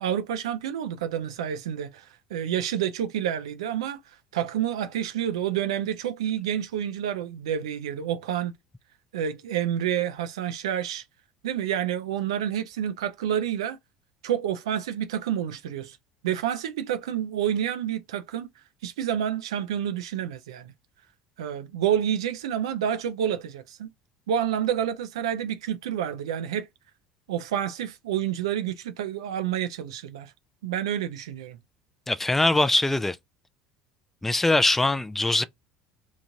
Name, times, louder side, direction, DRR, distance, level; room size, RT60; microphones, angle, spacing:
voice 1, 0.0-4.0 4.3-8.5 9.1-11.0 11.4-13.8 14.2-16.0 16.2-18.5 18.8-20.7 21.4-23.9 24.3-26.7 27.3-30.3 30.6-31.6, right 10 dB, 80° right, 0.4 m, -29 dB
voice 2, 32.1-33.2 34.2-35.4, left 2 dB, 10° left, 0.3 m, -22 dB
2.9 x 2.5 x 2.7 m
hypercardioid pair, 70°, 3 cm